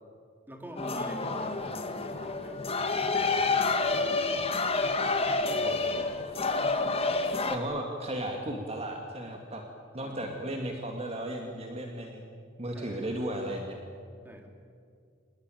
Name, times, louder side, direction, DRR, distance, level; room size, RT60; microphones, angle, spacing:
voice 1, 0.5-4.4 5.2-6.1 10.0-10.3 12.7-13.1 14.2-14.5, equal, 10° right, 3 dB, 3.2 m, -46 dB
sound 1, 0.8-7.6, left 3 dB, 30° left, 1.8 m, -29 dB
voice 2, 7.5-9.6 9.9-12.3 12.6-13.8, right 1 dB, 30° right, 2 dB, 2.1 m, -35 dB
27.0 x 19.5 x 9.2 m, 2.3 s
head